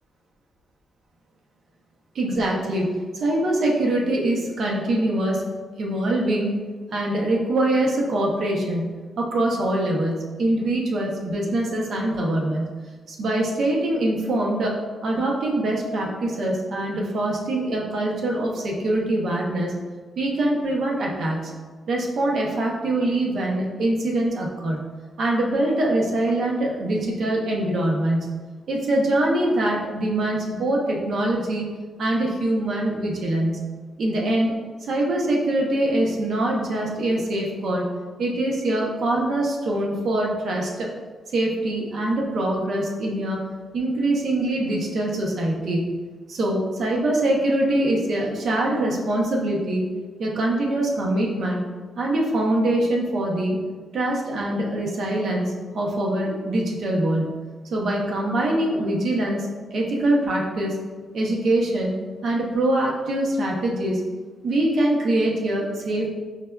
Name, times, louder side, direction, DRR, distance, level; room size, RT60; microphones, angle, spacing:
voice 1, 2.1-2.9 3.2-5.4 5.8-6.6 6.9-12.7 13.1-19.7 20.2-21.5 21.9-24.8 25.2-28.4 28.7-31.7 32.0-33.6 34.0-34.5 34.9-37.8 38.2-40.9 41.3-43.4 43.7-46.0 46.3-49.8 50.2-51.6 52.0-53.6 53.9-57.3 57.7-60.8 61.1-61.9 62.2-64.0 64.4-66.1, right 1 dB, 60° right, -1 dB, 0.6 m, -23 dB
4.7 x 2.2 x 2.2 m, 1.4 s
wide cardioid pair, 160°, 0 cm